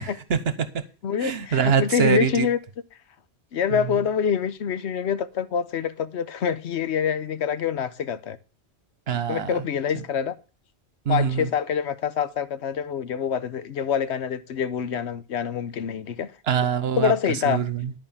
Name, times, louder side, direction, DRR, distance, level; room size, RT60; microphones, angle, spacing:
voice 1, 0.0-0.8 1.2-2.5 3.7-3.8 9.1-9.6 9.9-10.0 11.0-11.5 16.5-17.9, right 7 dB, 65° right, 1.1 m, -24 dB
voice 2, 1.0-2.6 3.5-8.4 9.1-10.3 11.1-16.3 17.0-17.6, left 7 dB, 75° left, 1.1 m, -26 dB
11.0 x 4.9 x 7.2 m
omnidirectional pair, 1.1 m